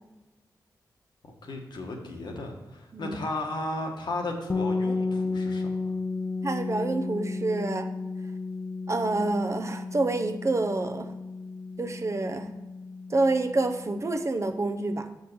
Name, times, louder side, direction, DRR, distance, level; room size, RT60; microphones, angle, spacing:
voice 1, 1.3-5.7, left 2 dB, 75° left, 2 dB, 1.3 m, -35 dB
sound 1, 4.5-14.2, left 3 dB, 35° left, 0.5 m, -33 dB
voice 2, 6.4-7.9 8.9-11.1 11.8-12.5 13.1-15.1, right 2 dB, 40° right, 7 dB, 0.7 m, -27 dB
6.2 x 5.4 x 4.6 m, 1.1 s
cardioid pair, 50°, 8 cm